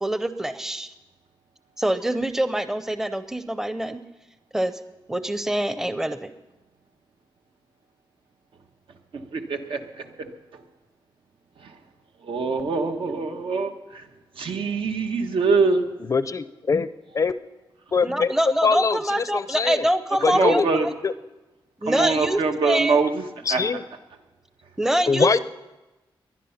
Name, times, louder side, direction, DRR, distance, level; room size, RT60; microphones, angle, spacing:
voice 1, 0.0-0.9 1.8-4.0 4.5-4.7 5.1-6.3 18.0-20.9 21.8-23.0 24.8-25.4, right 1 dB, 5° right, 11 dB, 0.6 m, -25 dB
voice 2, 9.1-10.3 11.6-11.7 12.2-14.1 14.4-15.8 20.3-20.9 21.9-23.2 23.5-23.6, right 4 dB, 80° right, 5 dB, 1.3 m, -24 dB
voice 3, 16.1-16.9 17.1-17.3 17.9-18.3 18.6-19.9 20.2-20.7 21.0-21.1 23.5-23.8 25.1-25.4, left 5 dB, 40° left, 14 dB, 0.4 m, -22 dB
20.5 x 11.0 x 5.7 m, 1.1 s
wide cardioid pair, 155°, 9 cm